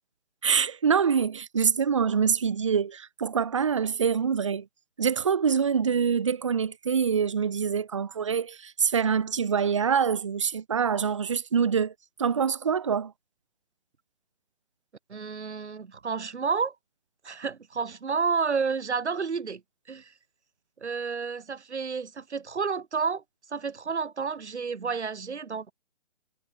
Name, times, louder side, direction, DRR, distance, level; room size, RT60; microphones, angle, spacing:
voice 1, 0.4-4.7 5.0-11.9 12.2-13.1, right 6 dB, 30° right, 0.6 m, -25 dB
voice 2, 15.1-16.7 17.2-19.6 19.9-20.1 20.8-23.2 23.5-25.7, right 5 dB, 80° right, 2.9 m, -30 dB
hypercardioid pair, 170°, 33 cm